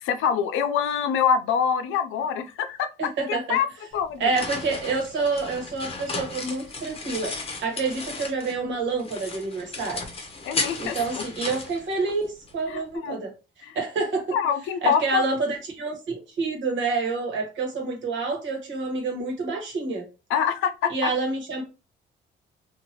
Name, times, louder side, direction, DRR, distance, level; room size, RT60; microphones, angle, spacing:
voice 1, 0.0-2.9 3.3-3.7 3.9-4.3 10.4-11.2 12.7-13.2 13.6-13.8 14.3-15.2 20.3-21.1, left 7 dB, 85° left, 0.5 m, -25 dB
voice 2, 3.0-3.6 4.2-7.3 7.6-10.1 10.8-13.3 13.7-14.4 14.8-20.1 20.9-21.6, right 4 dB, 70° right, 1.3 m, -28 dB
sound 1, 3.9-8.7 9.0-12.5, left 3 dB, 30° left, 0.8 m, -34 dB
2.7 x 2.5 x 2.9 m
cardioid pair, 90°, 20 cm